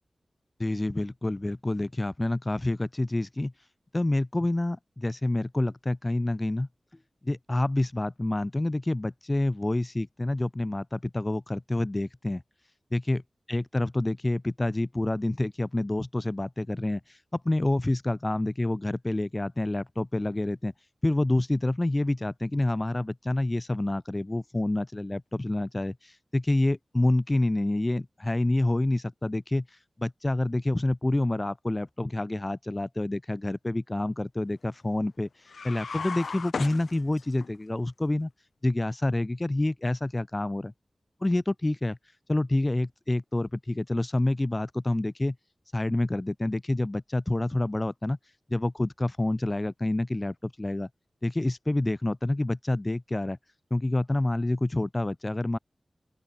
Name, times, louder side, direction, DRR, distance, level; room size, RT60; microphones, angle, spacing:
voice 1, 0.6-3.5 3.9-6.7 7.2-12.4 12.9-13.2 13.5-20.7 21.0-29.6 30.0-35.3 35.6-38.3 38.6-40.7 41.2-42.0 42.3-45.3 45.7-48.2 48.5-50.9 51.2-53.4 53.7-55.6, left 2 dB, 25° left, 6.8 m, -28 dB
sound 1, 35.5-37.5, left 5 dB, 85° left, 5.5 m, -35 dB
open air
wide cardioid pair, 75°, 0 cm